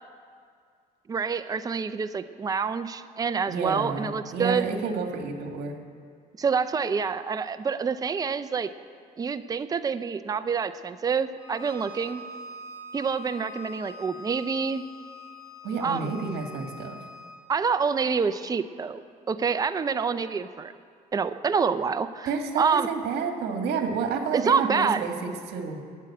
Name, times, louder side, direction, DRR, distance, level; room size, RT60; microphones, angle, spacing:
voice 1, 1.1-4.7 6.4-8.7 9.2-12.2 12.9-14.8 15.8-16.1 17.5-19.0 19.3-20.7 21.1-22.3 22.6-22.9 24.3-25.0, right 5 dB, 20° right, 11 dB, 0.5 m, -27 dB
voice 2, 3.5-5.8 15.6-17.0 22.3-25.8, right 5 dB, 75° right, 4 dB, 1.8 m, -30 dB
Bowed string instrument, 11.4-17.4, left 2 dB, 20° left, 4.4 m, -44 dB
12.0 x 8.9 x 8.5 m, 2.2 s
cardioid pair, 110°, 17 cm